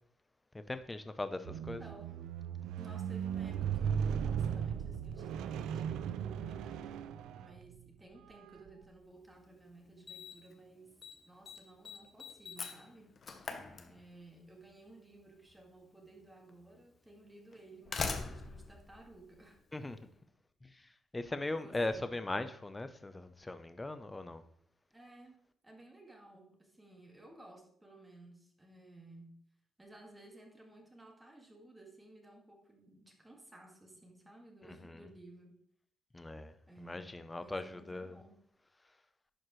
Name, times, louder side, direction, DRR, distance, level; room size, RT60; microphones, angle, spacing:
voice 1, 0.5-1.8 13.6-13.9 19.7-20.0 21.1-24.4 34.8-35.0 36.1-36.5 36.9-38.2, left 2 dB, 15° left, 0.6 m, -39 dB
Squeak, 1.4-7.8 8.6-8.7, right 8 dB, 90° right, 0.3 m, -37 dB
voice 2, 1.5-2.2 2.8-11.0 11.2-13.6 13.9-19.6 21.5-22.1 24.9-29.4 29.8-35.6 36.7-38.4, right 2 dB, 10° right, 1.8 m, -56 dB
Slam, 9.3-9.4 10.1-10.5 10.8-11.2 11.5-14.4 15.5-15.6 16.5-16.6 17.5-19.9, left 4 dB, 45° left, 0.9 m, -42 dB
10.5 x 4.7 x 3.1 m
cardioid pair, 90°, 0 cm